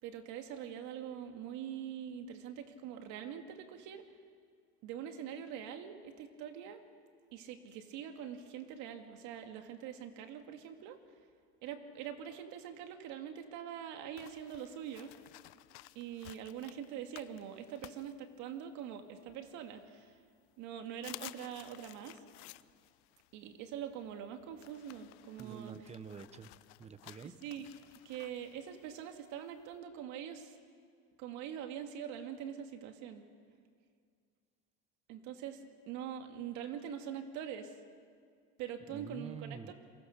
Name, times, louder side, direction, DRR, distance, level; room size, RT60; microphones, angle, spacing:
voice 1, 0.0-4.0 4.8-6.8 7.3-11.0 11.6-15.1 15.9-20.2 20.6-22.2 23.3-25.7 27.4-27.7 28.0-30.6 31.2-33.2 35.1-37.8 38.6-39.7, right 9 dB, 65° right, 6 dB, 2.3 m, -44 dB
sound 1, 14.2-18.8 19.3-20.2 20.6-20.7 20.9-29.8, left 20 dB, 75° left, 0.7 m, -55 dB
voice 2, 25.4-27.4 38.9-39.7, right 6 dB, 20° right, 13 dB, 1.1 m, -47 dB
27.5 x 23.0 x 6.7 m, 2.1 s
supercardioid pair, 120°, 31 cm